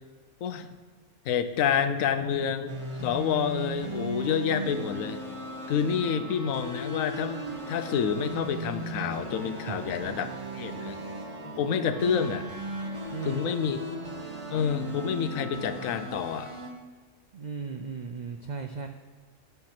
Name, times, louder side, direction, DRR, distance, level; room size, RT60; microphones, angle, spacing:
voice 1, 0.4-0.7 1.3-2.7 3.0-5.2 5.7-10.3 10.5-11.0 11.6-12.5 13.2-13.8 14.5-16.5, left 7 dB, 85° left, 11 dB, 1.1 m, -28 dB
sound 1, 2.7-16.7, right 1 dB, 25° right, 1.1 m, -38 dB
sound 2, 4.4-16.1, equal, 25° left, 1.9 m, -43 dB
voice 2, 17.3-18.9, right 5 dB, 80° right, 6 dB, 0.4 m, -36 dB
9.0 x 5.9 x 5.8 m, 1.4 s
omnidirectional pair, 1.4 m